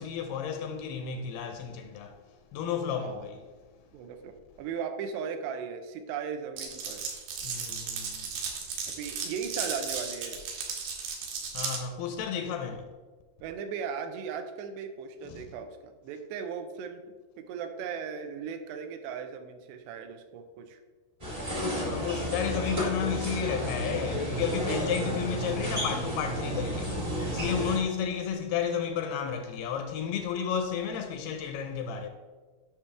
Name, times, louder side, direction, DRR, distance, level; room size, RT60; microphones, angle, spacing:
voice 1, 0.0-2.2 2.5-3.4 7.4-8.3 11.5-12.9 15.2-15.5 21.8-32.1, left 7 dB, 80° left, 2.4 m, -32 dB
voice 2, 2.9-3.2 3.9-7.0 8.9-10.4 13.4-17.0 17.4-20.8, right 6 dB, 85° right, 2.8 m, -37 dB
Glass, 6.6-11.8, right 6 dB, 65° right, 2.6 m, -35 dB
sound 1, 21.2-27.8, equal, 25° right, 0.8 m, -32 dB
9.6 x 5.9 x 3.4 m
omnidirectional pair, 4.9 m